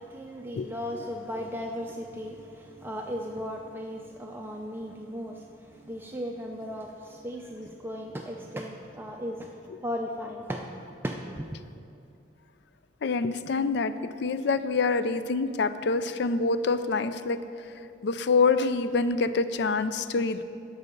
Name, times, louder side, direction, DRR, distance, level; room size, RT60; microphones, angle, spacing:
voice 1, 0.0-10.6 11.0-11.6, equal, 10° right, 1 dB, 0.4 m, -36 dB
voice 2, 13.0-17.4 18.0-20.4, left 4 dB, 60° left, 12 dB, 0.4 m, -26 dB
11.0 x 5.5 x 6.8 m, 2.5 s
head